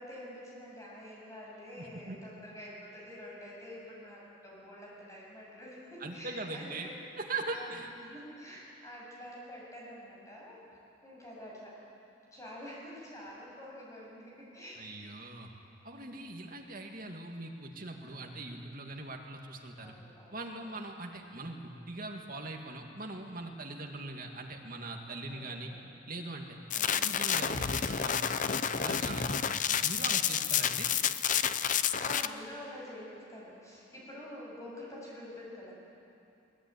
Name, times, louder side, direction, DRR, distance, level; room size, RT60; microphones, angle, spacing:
voice 1, 0.0-7.0 7.5-7.7 8.0-11.8 12.3-14.9 15.9-16.4 18.0-18.3 19.8-20.7 25.2-25.9 26.7-27.0 32.0-35.7, left 1 dB, 15° left, -4 dB, 7.5 m, -47 dB
voice 2, 1.8-2.2 6.0-6.9 7.2-7.9 14.8-15.5 15.8-19.9 20.3-25.7 26.1-26.6 27.0-30.9, right 2 dB, 45° right, 1 dB, 2.4 m, -41 dB
sound 1, 26.7-32.3, left 8 dB, 40° left, 0.6 m, -30 dB
21.0 x 20.5 x 9.8 m, 2.7 s
head